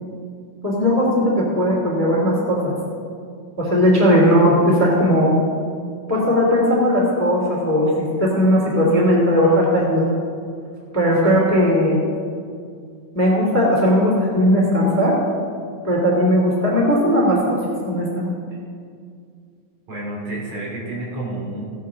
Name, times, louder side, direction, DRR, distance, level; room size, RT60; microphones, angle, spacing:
voice 1, 0.6-2.7 3.6-5.3 6.1-10.1 10.9-12.0 13.1-15.2 15.8-18.3, equal, 5° left, -4 dB, 2.2 m, -17 dB
voice 2, 19.9-21.7, right 2 dB, 65° right, -4 dB, 3.7 m, -29 dB
16.0 x 11.0 x 3.8 m, 2.2 s
omnidirectional pair, 3.4 m